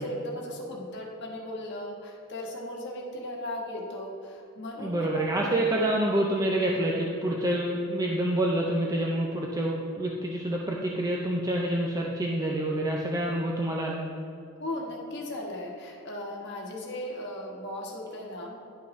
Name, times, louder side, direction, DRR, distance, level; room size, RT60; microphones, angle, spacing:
voice 1, 0.0-5.8 6.2-6.3 14.6-18.6, left 1 dB, 50° left, -1 dB, 1.3 m, -37 dB
voice 2, 4.8-14.0, right 1 dB, 15° right, -1 dB, 0.5 m, -27 dB
11.0 x 5.8 x 3.1 m, 2.8 s
head